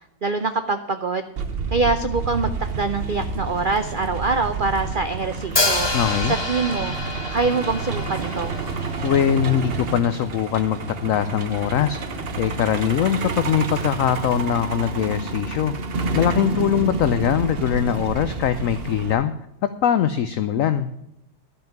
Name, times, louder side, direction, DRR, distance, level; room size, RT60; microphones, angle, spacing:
voice 1, 0.2-1.3 1.7-5.9 6.3-6.9 7.3-8.5, right 3 dB, 90° right, 8 dB, 0.4 m, -24 dB
Truck, 1.4-19.1, right 4 dB, 45° right, 0.9 m, -29 dB
Hi-hat, 5.6-9.5, left 2 dB, 20° left, 1.0 m, -27 dB
voice 2, 5.9-6.3 9.0-15.7 16.1-19.3 19.8-20.9, left 9 dB, 70° left, 11 dB, 0.8 m, -22 dB
12.0 x 5.6 x 9.1 m, 0.81 s
omnidirectional pair, 1.9 m